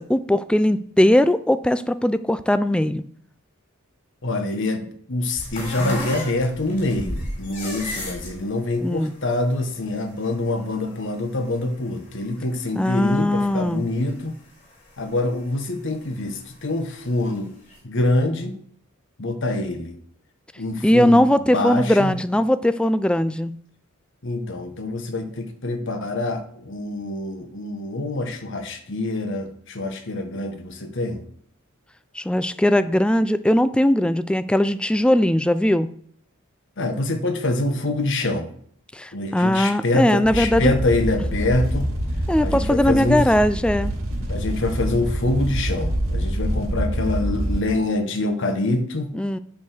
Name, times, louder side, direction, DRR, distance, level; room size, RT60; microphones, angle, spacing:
voice 1, 0.0-3.0 8.8-9.1 12.7-13.8 20.8-23.5 32.2-35.9 38.9-40.7 42.3-43.9 49.1-49.4, left 1 dB, 5° left, 13 dB, 0.3 m, -19 dB
voice 2, 4.2-14.3 15.0-17.5 17.8-18.5 19.2-20.0 20.6-21.3 21.5-22.1 24.2-31.2 36.8-38.5 39.1-41.9 42.4-43.2 44.3-49.1, left 2 dB, 60° left, 7 dB, 1.2 m, -25 dB
sound 1, 5.4-13.8 14.1-15.7 16.2-17.4 17.7-17.8, left 1 dB, 40° left, 4.0 m, -34 dB
sound 2, 40.2-47.6, right 1 dB, 80° right, 2.4 m, -26 dB
9.4 x 4.7 x 7.0 m, 0.62 s
head